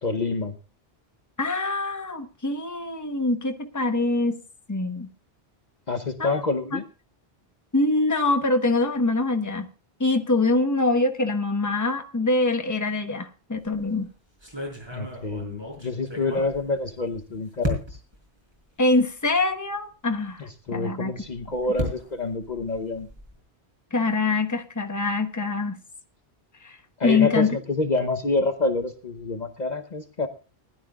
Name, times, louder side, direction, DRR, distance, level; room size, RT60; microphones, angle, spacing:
voice 1, 0.0-0.5 5.9-6.8 14.9-17.8 20.4-23.1 27.0-30.3, left 3 dB, 45° left, 6 dB, 1.0 m, -27 dB
voice 2, 1.4-4.4 4.7-5.1 6.2-6.4 6.7-6.8 7.7-9.7 10.0-14.1 18.8-21.1 23.9-25.8 26.6-26.8 27.0-27.6, left 3 dB, 20° left, 6 dB, 1.1 m, -24 dB
sound 1, 13.6-13.9 14.4-17.2 17.6-18.2 18.9-19.0 19.3-19.4 21.1-23.4, left 1 dB, 25° right, 4.5 m, -34 dB
20.0 x 12.0 x 2.4 m, 0.34 s
omnidirectional pair, 1.0 m